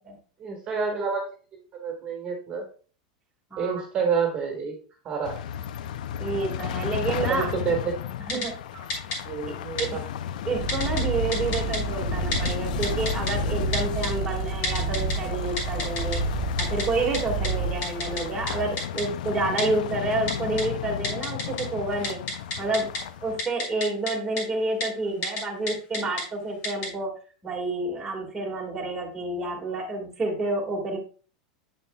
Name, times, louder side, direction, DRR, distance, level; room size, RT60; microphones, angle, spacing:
voice 1, 0.4-1.3 1.7-2.6 3.6-4.7 5.0-5.4 7.3-7.8 8.3-8.4 8.7-8.8 9.2-10.0 25.0-25.2, right 5 dB, 25° right, 1 dB, 1.6 m, -28 dB
voice 2, 3.5-3.8 6.2-7.5 8.3-8.6 9.8-10.0 10.4-16.2 16.6-22.2 22.6-22.9 23.2-27.1 27.4-31.0, right 2 dB, 10° right, -3 dB, 1.7 m, -29 dB
sound 1, 5.2-23.4, left 10 dB, 80° left, 0.4 m, -33 dB
Typing, 8.3-8.5 8.9-9.2 9.8-9.9 10.7-11.0 11.3-11.8 12.3-12.5 12.8-13.3 13.7-14.1 14.6-15.1 15.6-16.2 16.6-16.8 17.1-17.2 17.4-17.5 17.8-18.2 18.5-18.6 18.8-19.0 19.6-19.7 20.3-20.6 21.0-21.6 21.9-23.0 23.4-24.1 24.4-24.5 24.8-24.9 25.2-25.4 25.7-26.2 26.6-26.9, left 2 dB, 40° left, 3.0 m, -29 dB
Purr, 10.6-18.6, right 5 dB, 45° right, 1.2 m, -30 dB
8.8 x 7.0 x 2.3 m, 0.39 s
supercardioid pair, 165°, 4 cm